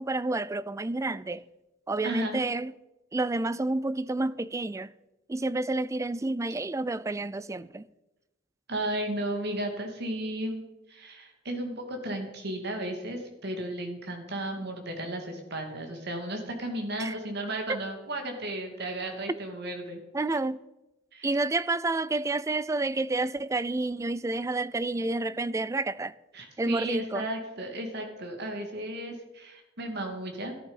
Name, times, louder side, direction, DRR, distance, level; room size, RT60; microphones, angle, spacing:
voice 1, 0.0-1.4 1.9-2.7 3.1-4.9 5.3-7.8 17.0-17.1 20.1-20.6 21.2-26.1 26.6-27.3, right 2 dB, 15° right, 0.4 m, -29 dB
voice 2, 2.0-2.4 8.7-10.6 10.9-20.0 21.1-21.3 26.3-30.5, right 1 dB, 60° right, 2.6 m, -34 dB
13.5 x 10.5 x 5.7 m
head